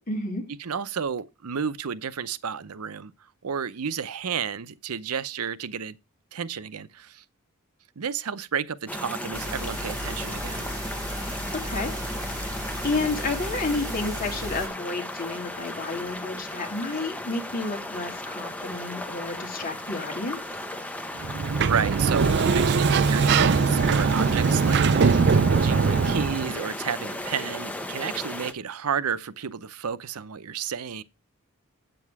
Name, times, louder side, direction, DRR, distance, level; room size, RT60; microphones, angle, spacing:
voice 1, 0.1-0.4 11.5-11.9 12.2-20.6, left 3 dB, 40° left, 2.7 m, -31 dB
voice 2, 0.6-3.1 3.4-6.0 6.3-7.2 8.0-10.6 21.2-21.3 21.6-25.3 25.6-31.0, right 7 dB, 90° right, 0.7 m, -31 dB
sound 1, 8.9-28.5, left 1 dB, 5° left, 0.9 m, -35 dB
sound 2, 9.3-14.7, right 1 dB, 15° right, 2.2 m, -35 dB
Sliding door, 21.2-26.5, right 5 dB, 50° right, 0.4 m, -21 dB
8.4 x 7.7 x 4.7 m
head